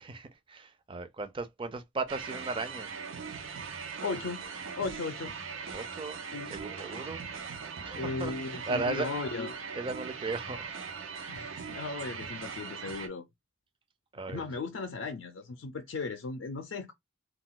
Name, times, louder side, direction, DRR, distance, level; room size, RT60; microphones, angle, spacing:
voice 1, 0.0-2.9 5.7-6.2 6.5-7.2 7.8-9.1 9.7-10.7 11.1-11.3 14.1-14.4, right 3 dB, 25° right, 0.4 m, -36 dB
sound 1, 2.1-13.1, right 5 dB, 85° right, 0.6 m, -40 dB
voice 2, 4.0-4.4 4.8-5.3 5.7-6.0 6.3-6.5 7.9-9.6 11.3-13.2 14.3-16.9, left 4 dB, 75° left, 0.4 m, -36 dB
2.3 x 2.2 x 3.8 m
head